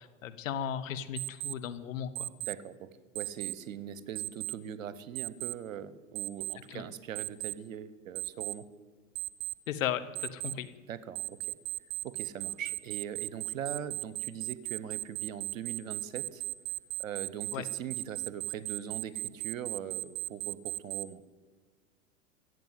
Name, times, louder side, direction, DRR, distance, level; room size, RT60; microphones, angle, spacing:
voice 1, 0.0-2.3 6.7-6.8 9.7-10.7 17.5-17.6, left 9 dB, 75° left, 10 dB, 1.1 m, -36 dB
Alarm, 1.2-1.5 2.2-2.5 3.2-3.5 4.2-4.5 5.2-5.5 6.2-6.5 7.2-7.5 8.2-8.5 9.2-9.5 10.2-10.5 11.2-21.0, right 16 dB, 40° right, 0.6 m, -36 dB
voice 2, 2.4-2.9 3.1-8.6 10.9-11.4 12.0-16.4 17.0-21.2, right 9 dB, 75° right, 16 dB, 1.0 m, -41 dB
14.0 x 7.9 x 9.1 m, 1.5 s
hypercardioid pair, 90°, 40 cm